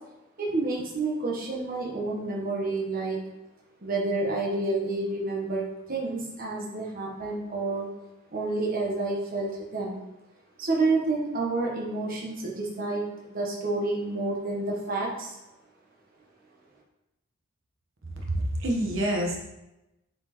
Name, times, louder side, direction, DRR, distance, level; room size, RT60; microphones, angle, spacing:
voice 1, 0.4-3.2 3.8-7.9 8.3-10.0 10.6-13.0 13.3-15.4, right 3 dB, 45° right, -3 dB, 1.0 m, -29 dB
voice 2, 18.3-19.4, right 1 dB, 65° right, 0 dB, 1.1 m, -27 dB
7.3 x 4.3 x 3.0 m, 0.96 s
head